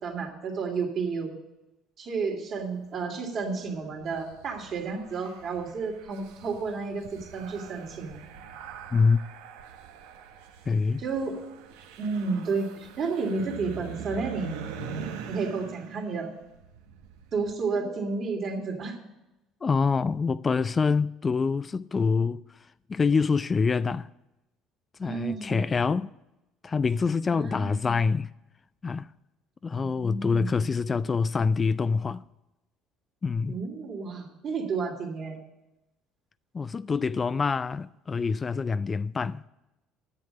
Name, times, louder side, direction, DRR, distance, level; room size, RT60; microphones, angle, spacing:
voice 1, 0.0-1.3 2.0-8.2 11.0-11.3 12.0-14.5 15.3-16.3 17.3-18.9 25.0-25.7 27.3-28.1 29.7-30.7 33.5-35.4, right 4 dB, 50° right, 3.0 m, -31 dB
sound 1, 3.7-17.5, right 6 dB, 80° right, 1.0 m, -43 dB
voice 2, 10.7-11.0 17.8-17.9 19.6-22.4 22.9-24.1 25.0-26.1 26.6-28.3 28.8-29.1 29.6-32.2 33.2-33.6 36.5-39.4, left 5 dB, 30° left, 0.4 m, -26 dB
10.5 x 7.4 x 8.8 m
hypercardioid pair, 70°, 0 cm